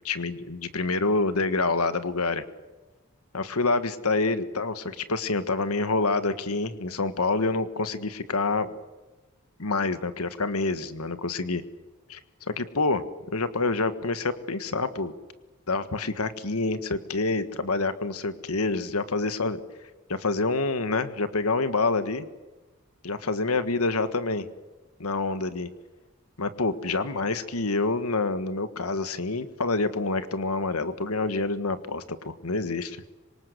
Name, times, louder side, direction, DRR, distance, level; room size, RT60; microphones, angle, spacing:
voice 1, 0.0-2.4 3.3-8.7 9.6-11.6 12.1-12.2 12.5-13.0 13.3-15.1 15.7-19.6 20.1-22.3 23.0-24.5 25.0-25.7 26.4-33.0, left 3 dB, 85° left, 11 dB, 1.5 m, -27 dB
26.5 x 24.0 x 8.0 m, 1.2 s
head